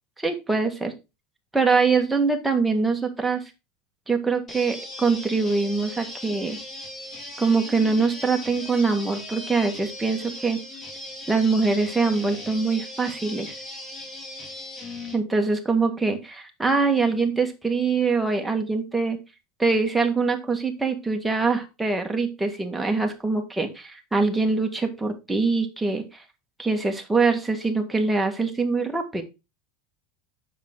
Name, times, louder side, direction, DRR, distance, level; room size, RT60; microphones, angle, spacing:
voice 1, 0.2-0.9 1.5-3.4 4.1-6.6 7.4-10.6 11.3-13.5 15.1-19.2 19.6-26.2 26.6-29.2, right 4 dB, 10° right, 3 dB, 1.7 m, -23 dB
sound 1, 4.5-15.2, left 1 dB, 25° left, 2.6 m, -38 dB
7.2 x 6.3 x 3.7 m, 0.26 s
hypercardioid pair, 95°, 0 cm